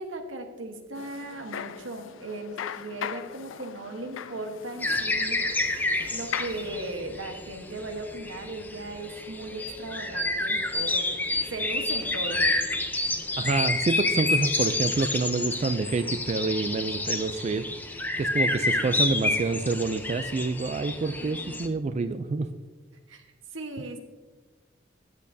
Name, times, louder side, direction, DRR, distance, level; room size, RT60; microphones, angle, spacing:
voice 1, 0.0-5.4 6.1-11.1 11.5-12.5 21.2-21.8 23.1-23.3 23.5-24.0, right 2 dB, 85° right, 5 dB, 1.3 m, -37 dB
sound 1, 0.9-6.9, left 8 dB, 85° left, 0.4 m, -39 dB
sound 2, 4.8-21.7, left 2 dB, 10° left, 0.6 m, -29 dB
voice 2, 13.4-17.7 18.2-22.5, right 3 dB, 35° right, 10 dB, 0.3 m, -27 dB
13.5 x 8.6 x 2.7 m, 1.3 s
head